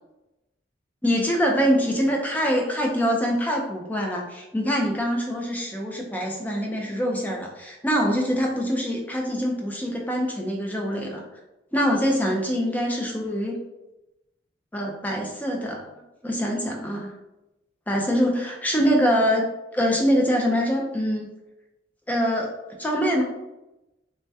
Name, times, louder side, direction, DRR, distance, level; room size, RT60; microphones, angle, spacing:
voice 1, 1.0-11.2 11.7-13.6 14.7-15.8 16.2-17.1 17.9-19.5 19.7-21.3 22.1-22.5 22.8-23.2, equal, 10° left, 0 dB, 0.4 m, -24 dB
3.3 x 2.1 x 2.6 m, 0.96 s
head